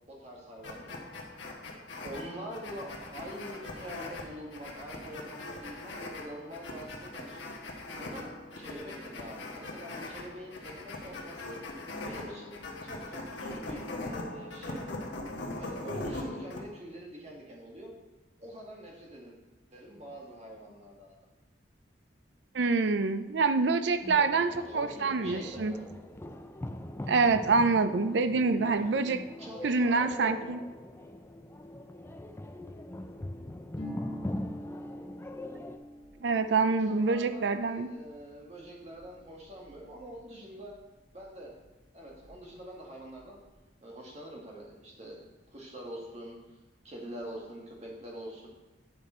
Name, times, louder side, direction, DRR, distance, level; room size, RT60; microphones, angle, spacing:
voice 1, 0.1-1.0 2.0-7.4 8.0-11.6 12.0-14.8 15.6-17.9 18.4-19.3 19.7-21.1 24.5-25.9 28.6-28.7 29.4-30.4 36.8-40.7 41.1-41.5 41.9-43.4 43.8-45.2 45.5-46.4 46.8-48.5, equal, 35° right, -2 dB, 1.8 m, -45 dB
sound 1, 0.6-16.6, left 2 dB, 75° left, 1.3 m, -41 dB
voice 2, 22.5-25.7 27.1-29.2 29.6-30.6 36.2-37.9, right 4 dB, 65° right, 10 dB, 0.5 m, -26 dB
sound 2, 24.0-35.8, left 1 dB, 15° left, 0.4 m, -42 dB
Harp, 33.7-41.2 41.5-42.6 42.9-43.5, equal, 30° left, 2.1 m, -47 dB
9.8 x 5.2 x 4.3 m, 1.1 s
head